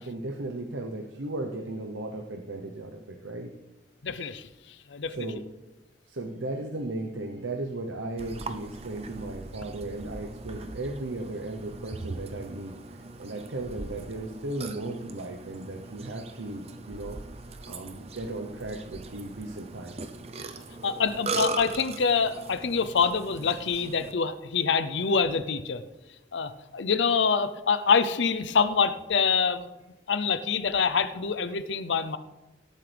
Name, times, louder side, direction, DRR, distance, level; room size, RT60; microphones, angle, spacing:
voice 1, 0.0-3.5 5.1-5.4 6.1-12.8 13.2-17.2 17.7-20.1, right 2 dB, 80° right, 3 dB, 0.9 m, -36 dB
voice 2, 4.0-4.5 4.9-5.2 20.8-25.8 26.3-29.7 30.1-32.2, left 5 dB, 70° left, 13 dB, 0.6 m, -25 dB
Burping eructation, 8.2-24.1, right 3 dB, 30° right, 0.6 m, -40 dB
18.0 x 8.4 x 3.4 m, 1.1 s
head